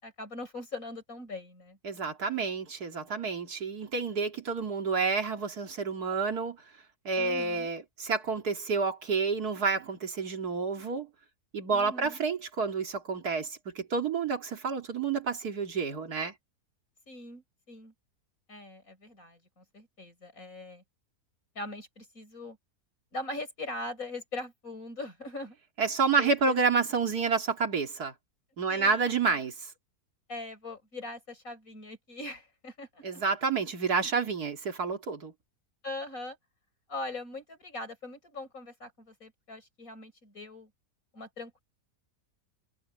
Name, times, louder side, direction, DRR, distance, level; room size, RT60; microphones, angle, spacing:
voice 1, 0.0-1.8 7.2-7.7 11.7-12.2 17.1-17.9 18.5-20.8 21.5-22.6 23.1-25.6 26.2-26.9 28.7-29.4 30.3-33.2 35.8-36.4 36.9-40.7 41.1-41.6, left 2 dB, 55° left, 6.2 m, -41 dB
voice 2, 1.8-6.6 7.0-11.1 11.5-16.3 25.8-28.1 28.6-29.7 33.0-35.3, right 5 dB, 70° right, 2.8 m, -29 dB
omnidirectional pair, 1.7 m